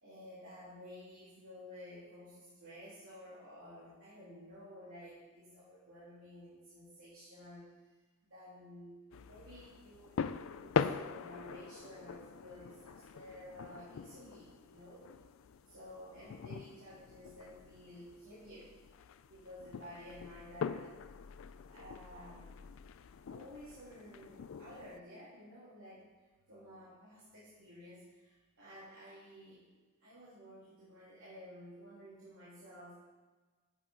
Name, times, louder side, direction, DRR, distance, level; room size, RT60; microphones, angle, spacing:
voice 1, 0.0-7.7 8.3-15.1 15.7-18.7 19.3-20.9 21.7-22.5 23.3-26.0 26.5-29.6 30.0-33.0, equal, 75° right, -10 dB, 2.7 m, -53 dB
sound 1, 9.1-25.0, left 6 dB, 65° left, 0.4 m, -42 dB
8.9 x 8.2 x 3.8 m, 1.3 s
head